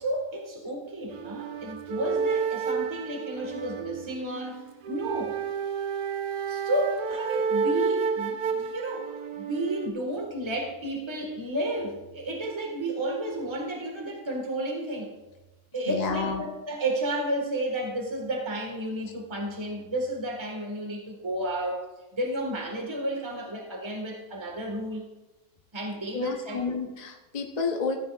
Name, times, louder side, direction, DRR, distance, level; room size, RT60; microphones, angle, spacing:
voice 1, 0.0-4.6 4.9-5.4 6.5-9.1 9.3-15.1 15.7-21.9 22.1-25.0 25.7-26.6, right 1 dB, 20° right, 1 dB, 1.6 m, -32 dB
sound 1, 1.1-9.9, right 6 dB, 85° right, 1.3 m, -31 dB
voice 2, 15.9-16.4 26.1-28.0, left 5 dB, 35° left, 3 dB, 0.7 m, -30 dB
14.5 x 9.3 x 2.4 m, 1.1 s
omnidirectional pair, 1.7 m